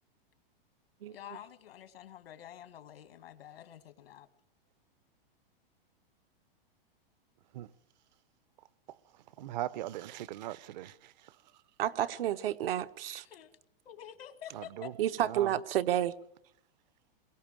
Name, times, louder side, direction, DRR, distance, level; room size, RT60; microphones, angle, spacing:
voice 1, 1.1-4.3 13.2-13.5 13.8-15.0, left 10 dB, 90° left, 1.7 m, -48 dB
voice 2, 9.4-11.1 14.5-14.9 15.3-15.5, right 13 dB, 50° right, 0.7 m, -39 dB
voice 3, 11.8-13.2 15.0-16.1, right 11 dB, 75° right, 1.1 m, -30 dB
22.0 x 15.5 x 8.9 m
supercardioid pair, 160°, 29 cm